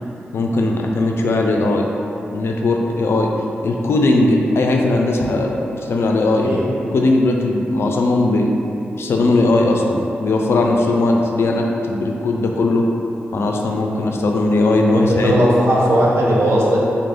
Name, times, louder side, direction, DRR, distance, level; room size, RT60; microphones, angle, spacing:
voice 1, 0.3-1.9 2.3-3.3 3.6-6.5 6.9-8.5 9.0-12.9 13.3-15.5, left 2 dB, 70° left, 1 dB, 0.4 m, -18 dB
voice 2, 6.2-6.7 14.9-16.8, equal, 85° right, -4 dB, 0.7 m, -17 dB
4.1 x 2.5 x 3.5 m, 2.8 s
cardioid pair, 75°, 4 cm